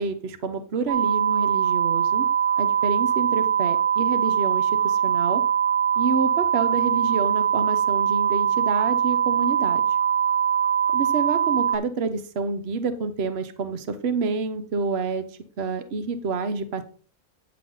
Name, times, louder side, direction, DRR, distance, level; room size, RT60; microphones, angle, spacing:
voice 1, 0.0-2.3 2.6-5.4 6.0-9.8 10.9-15.2 15.6-16.8, right 4 dB, 50° right, 9 dB, 1.1 m, -28 dB
sound 1, 0.9-11.8, right 8 dB, 90° right, 1.6 m, -22 dB
9.6 x 7.3 x 3.9 m, 0.41 s
omnidirectional pair, 1.4 m